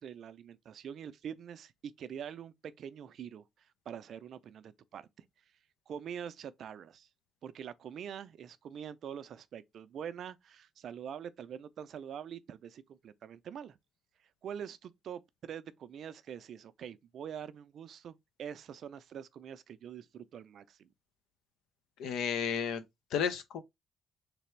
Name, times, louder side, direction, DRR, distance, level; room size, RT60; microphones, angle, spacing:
voice 1, 0.0-5.6 5.9-7.1 7.4-13.8 14.2-20.9, right 8 dB, 65° right, 0.4 m, -45 dB
voice 2, 22.0-22.8 23.1-23.6, left 7 dB, 85° left, 0.6 m, -32 dB
3.4 x 3.3 x 3.1 m
cardioid pair, 90°, 0 cm